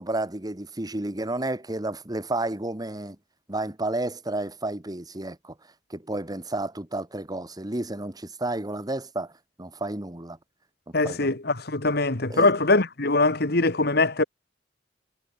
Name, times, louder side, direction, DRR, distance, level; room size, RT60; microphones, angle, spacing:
voice 1, 0.0-3.2 3.5-5.5 5.9-9.3 9.6-10.4 10.9-11.3 12.3-12.5, right 2 dB, 20° right, 1.6 m, -31 dB
voice 2, 10.9-14.2, left 3 dB, 60° left, 2.1 m, -22 dB
head